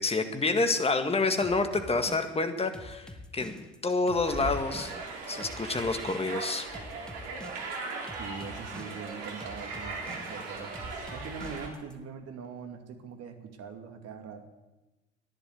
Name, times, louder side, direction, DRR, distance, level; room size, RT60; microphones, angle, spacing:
voice 1, 0.0-3.5 3.8-4.9 5.3-6.7, left 3 dB, 20° left, 7 dB, 1.9 m, -28 dB
sound 1, 1.4-11.9, left 1 dB, 5° left, 1.9 m, -46 dB
sound 2, 4.3-11.7, right 3 dB, 65° right, 3.3 m, -38 dB
voice 2, 8.1-10.7 11.1-14.5, right 6 dB, 50° right, 6 dB, 2.5 m, -42 dB
14.5 x 11.0 x 8.3 m, 1.1 s
hypercardioid pair, 70°, 32 cm